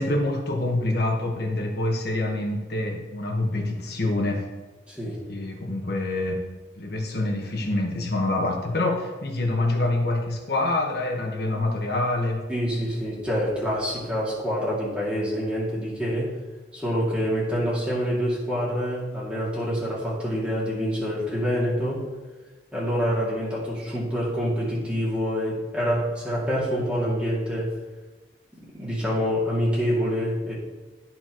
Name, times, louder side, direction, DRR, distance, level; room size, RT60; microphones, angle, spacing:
voice 1, 0.0-4.4 5.3-6.4 6.7-12.4, left 2 dB, 60° left, 1 dB, 1.3 m, -26 dB
voice 2, 4.9-5.2 12.5-16.3 16.7-22.1 22.7-27.7 28.7-30.5, equal, 5° right, -7 dB, 2.3 m, -26 dB
13.0 x 4.5 x 3.0 m, 1.2 s
head